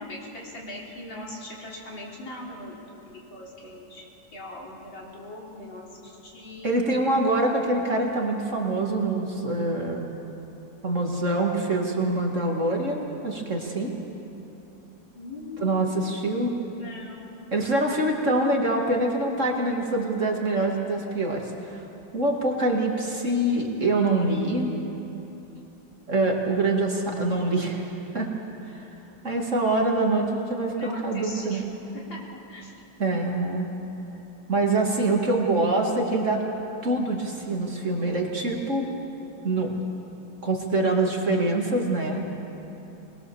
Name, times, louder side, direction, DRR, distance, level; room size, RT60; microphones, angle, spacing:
voice 1, 0.0-2.8 3.1-6.8 15.1-16.4 16.8-17.4 30.7-31.6 31.9-32.2 32.5-32.7, left 1 dB, 75° left, -3 dB, 4.5 m, -40 dB
voice 2, 6.6-10.1 10.8-13.9 15.6-16.5 17.5-21.8 22.1-24.7 26.1-27.9 28.1-28.3 28.8-28.9 29.2-31.6 33.0-33.7 34.5-36.4 36.8-38.9 39.4-39.7 40.4-42.2, right 2 dB, 40° right, 0 dB, 2.4 m, -25 dB
24.5 x 20.5 x 7.1 m, 2.9 s
omnidirectional pair, 2.1 m